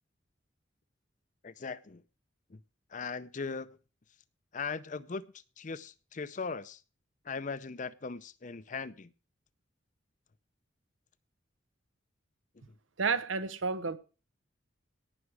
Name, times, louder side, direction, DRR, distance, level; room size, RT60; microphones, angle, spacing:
voice 1, 1.4-2.0 2.5-2.6 2.9-3.7 4.5-6.8 7.2-9.1 12.7-12.8, left 4 dB, 40° left, 0.6 m, -39 dB
voice 2, 13.0-14.0, right 4 dB, 90° right, 0.9 m, -31 dB
18.0 x 6.3 x 4.8 m
head